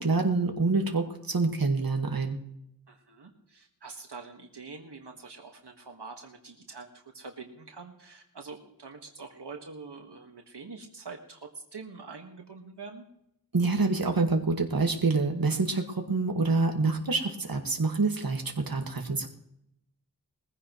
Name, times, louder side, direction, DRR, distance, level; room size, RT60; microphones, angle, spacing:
voice 1, 0.0-2.4 13.5-19.3, right 3 dB, 55° right, 3 dB, 1.8 m, -26 dB
voice 2, 2.9-13.1, right 4 dB, 80° right, 3 dB, 1.7 m, -45 dB
21.5 x 15.5 x 3.1 m, 0.78 s
wide cardioid pair, 55°, 40 cm